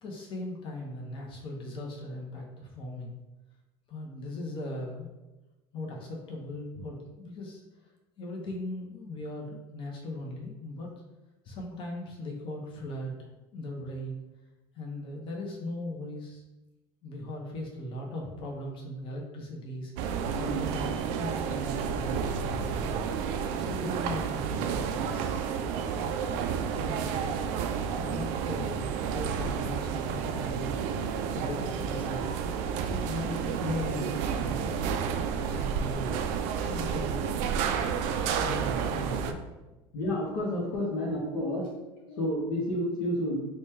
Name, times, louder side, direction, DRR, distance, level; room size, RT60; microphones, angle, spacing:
voice 1, 0.0-3.1 3.9-5.1 5.7-7.6 8.2-10.9 11.4-14.2 14.7-16.4 17.0-22.9 23.6-25.5 26.2-26.4 26.7-27.4 27.9-30.8 31.3-32.3 32.8-34.6 35.4-36.2 36.6-37.3 38.4-39.4, left 1 dB, 45° left, -1 dB, 0.8 m, -38 dB
sound 1, 20.0-39.3, right 7 dB, 65° right, 0.4 m, -31 dB
voice 2, 39.9-41.7 42.0-43.5, left 1 dB, 75° left, -4 dB, 0.9 m, -30 dB
3.1 x 2.3 x 4.2 m, 1.1 s
supercardioid pair, 95°, 12 cm